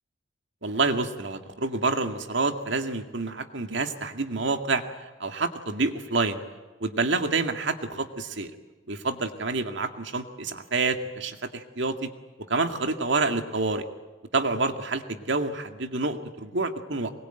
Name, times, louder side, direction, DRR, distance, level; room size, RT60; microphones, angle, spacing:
voice 1, 0.6-6.4 6.8-8.5 8.9-12.1 12.5-13.9 14.3-17.1, right 3 dB, 65° right, 7 dB, 2.1 m, -28 dB
24.0 x 22.0 x 9.2 m, 1.3 s
head